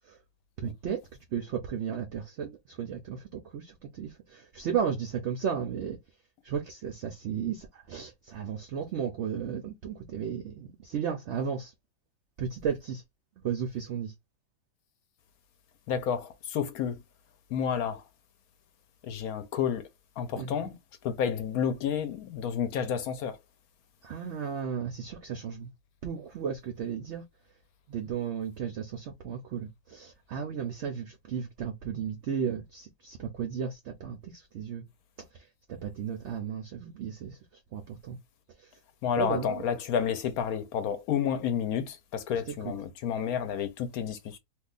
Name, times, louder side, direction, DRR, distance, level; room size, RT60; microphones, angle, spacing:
voice 1, 0.6-1.0 1.3-6.0 6.4-11.7 12.4-13.0 13.4-14.1 20.3-20.7 24.0-25.7 26.0-27.2 27.9-34.2 34.5-34.8 35.8-37.4 37.7-38.2 39.2-39.6, right 7 dB, 80° right, 0.6 m, -34 dB
voice 2, 15.9-17.0 17.5-18.0 19.0-19.8 20.2-20.7 21.0-23.4 39.0-44.4, left 8 dB, 70° left, 1.0 m, -30 dB
2.7 x 2.3 x 3.7 m
omnidirectional pair, 1.8 m